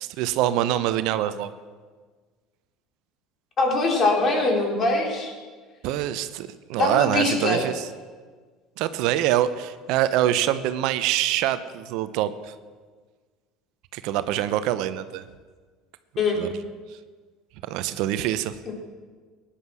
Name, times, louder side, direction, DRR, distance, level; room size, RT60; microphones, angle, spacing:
voice 1, 0.0-1.5 5.8-7.9 8.8-12.5 13.9-15.2 16.4-16.5 17.6-18.6, right 12 dB, 70° right, 12 dB, 0.7 m, -25 dB
voice 2, 3.6-5.3 6.8-7.6 16.2-16.4 18.7-18.8, left 2 dB, 40° left, 1 dB, 3.8 m, -22 dB
17.0 x 10.0 x 6.2 m, 1.5 s
hypercardioid pair, 85°, 0 cm